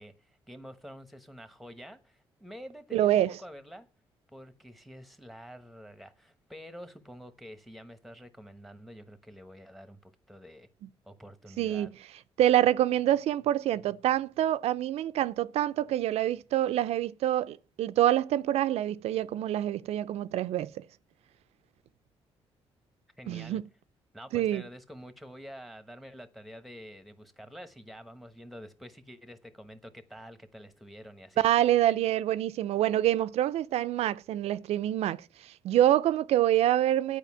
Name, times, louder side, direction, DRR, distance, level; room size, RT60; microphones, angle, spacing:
voice 1, 0.0-3.9 4.3-10.7 11.0-11.9 23.2-23.6 24.1-31.5, equal, ahead, 1.1 m, -48 dB
voice 2, 2.9-3.3 11.6-11.9 12.4-20.8 23.3-23.6 24.3-24.6 31.4-37.2, right 12 dB, 85° right, 0.4 m, -26 dB
9.2 x 5.0 x 7.4 m
cardioid pair, 100°, 10 cm